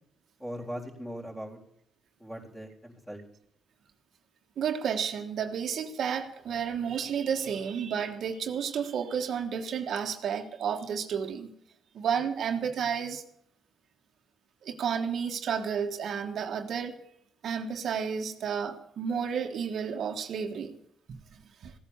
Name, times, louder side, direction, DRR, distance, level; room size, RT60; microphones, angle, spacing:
voice 1, 0.4-1.6 2.2-3.2, equal, 5° left, 4.1 m, -39 dB
voice 2, 4.6-11.5 11.9-13.2 14.6-17.0 17.4-20.8 21.1-21.2 21.6-21.7, right 7 dB, 65° right, 1.4 m, -31 dB
16.5 x 9.3 x 7.2 m
cardioid pair, 90°, 0 cm